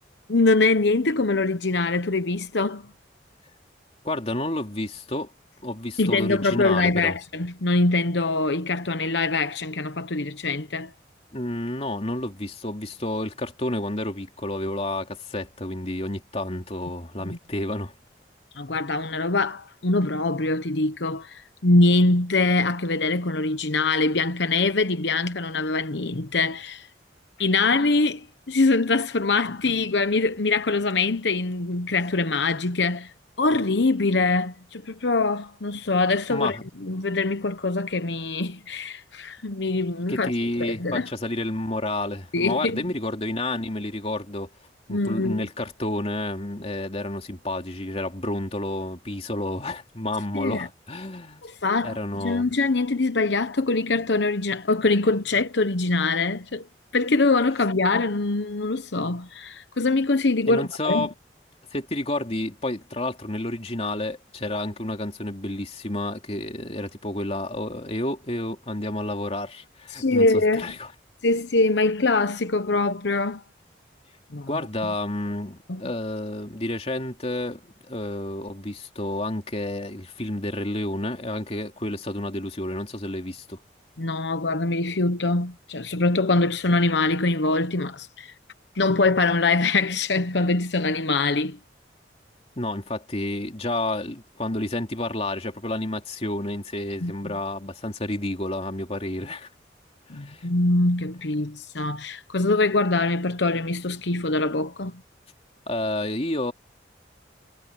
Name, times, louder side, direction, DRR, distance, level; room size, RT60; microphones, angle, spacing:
voice 1, 0.3-2.9 6.0-10.9 17.2-17.4 18.5-26.9 27.4-33.1 33.4-40.3 40.6-41.1 42.3-42.8 44.9-45.5 50.3-50.7 51.4-56.6 56.9-61.1 69.9-70.7 71.2-73.4 74.3-74.5 75.7-75.8 84.0-88.3 88.8-91.6 97.0-97.1 100.1-104.9, left 3 dB, 75° left, 1.0 m, -23 dB
voice 2, 4.0-5.3 5.6-7.1 11.3-17.9 36.3-36.6 40.1-44.5 44.9-51.5 51.8-52.5 60.5-61.1 61.7-70.9 74.5-83.6 92.6-99.5 100.1-100.5 105.7-106.5, left 1 dB, 35° left, 3.0 m, -30 dB
head